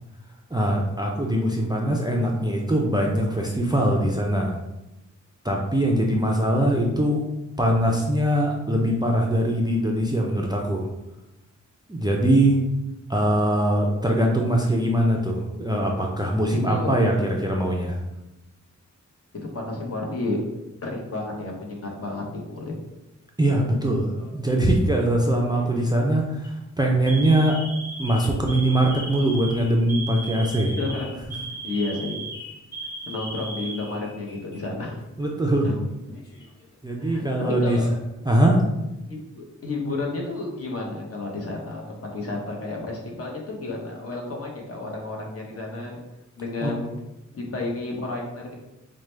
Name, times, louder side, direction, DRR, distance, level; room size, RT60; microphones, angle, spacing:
voice 1, 0.5-4.6 5.4-7.2 7.6-10.9 11.9-12.6 13.1-18.0 23.4-27.6 28.0-30.7 35.2-35.7 36.8-37.8 38.2-38.6 46.6-46.7, right 1 dB, 15° right, -1 dB, 0.4 m, -22 dB
voice 2, 16.5-17.3 19.4-20.4 20.8-22.7 30.8-31.1 31.6-32.3 33.1-35.0 35.6-35.8 37.0-37.9 39.1-46.0 46.4-46.9 47.3-48.6, left 2 dB, 50° left, -1 dB, 0.9 m, -31 dB
Alarm, 24.2-24.7 25.5-25.8 26.3-26.5 27.1-34.6 34.9-35.0 35.9-36.6, right 2 dB, 35° left, 1.1 m, -37 dB
4.6 x 2.1 x 3.2 m, 0.96 s
wide cardioid pair, 145°, 30 cm